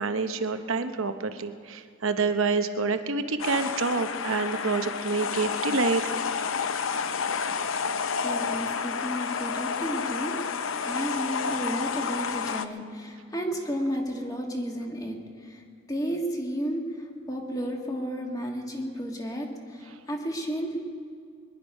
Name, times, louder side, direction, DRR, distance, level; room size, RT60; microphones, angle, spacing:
voice 1, 0.0-6.0, right 4 dB, 80° right, 9 dB, 0.9 m, -27 dB
sound 1, 3.4-12.7, left 6 dB, 75° left, 0.6 m, -30 dB
voice 2, 8.2-15.2 15.4-15.6 15.9-20.8, equal, 20° left, 1 dB, 1.7 m, -32 dB
22.0 x 11.0 x 5.4 m, 2.2 s
head